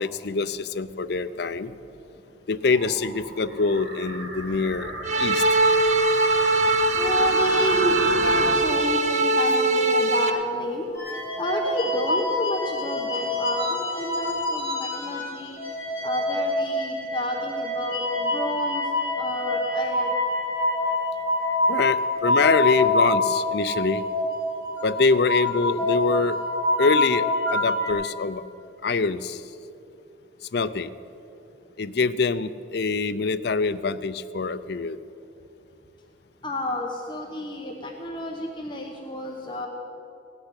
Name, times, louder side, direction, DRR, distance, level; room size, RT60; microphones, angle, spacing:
voice 1, 0.0-1.7 2.5-4.9 5.2-5.4 21.7-24.0 24.8-26.4 26.8-28.4 28.8-29.4 30.5-30.9 31.8-35.0, left 4 dB, 55° left, 12 dB, 0.5 m, -24 dB
sound 1, 2.7-8.6, right 1 dB, 75° right, 2.5 m, -33 dB
sound 2, 5.0-10.3, right 2 dB, 35° right, 0.7 m, -21 dB
voice 2, 6.3-6.7 6.9-10.9 11.4-15.6 16.0-18.9 19.2-20.1 36.4-39.7, left 1 dB, 25° left, 0 dB, 1.0 m, -30 dB
sound 3, 11.0-15.3 15.6-27.9, left 2 dB, 10° right, 4.3 m, -26 dB
17.0 x 6.7 x 9.7 m, 2.8 s
head